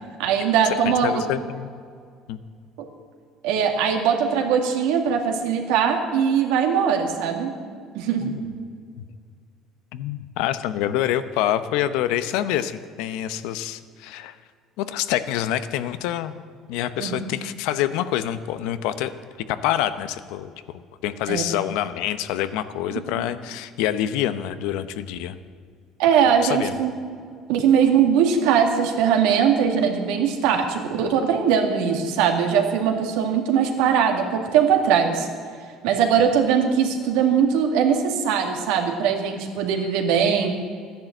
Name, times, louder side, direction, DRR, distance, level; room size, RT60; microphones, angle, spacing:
voice 1, 0.2-1.1 2.8-2.9 3.4-7.5 8.0-8.3 17.0-17.3 21.3-21.4 23.2-23.3 26.0-26.9 27.5-35.3 35.8-40.5, right 7 dB, 85° right, 3 dB, 2.0 m, -21 dB
voice 2, 0.8-1.7 2.3-2.4 8.2-8.4 9.9-14.3 14.8-16.3 16.7-19.1 19.5-20.5 21.0-25.3 26.4-26.8, left 12 dB, 80° left, 12 dB, 0.8 m, -26 dB
13.0 x 10.5 x 7.8 m, 2.1 s
cardioid pair, 115°, 0 cm